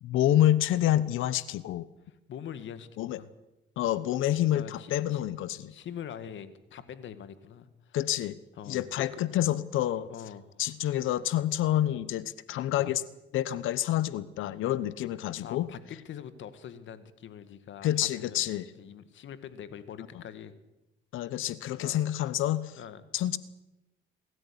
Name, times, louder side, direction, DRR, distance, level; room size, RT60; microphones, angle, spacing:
voice 1, 0.0-1.9 3.0-3.2 3.8-5.7 7.9-8.4 8.7-10.1 10.6-13.0 13.3-15.7 17.8-18.7 21.1-22.8 23.1-23.4, left 13 dB, 85° left, 17 dB, 1.1 m, -28 dB
voice 2, 2.1-3.3 4.5-5.2 5.7-8.0 8.6-9.2 10.1-10.5 15.4-20.5 21.7-22.0 22.8-23.0, left 9 dB, 70° left, 13 dB, 2.0 m, -44 dB
25.5 x 13.5 x 10.0 m, 0.97 s
cardioid pair, 90°, 20 cm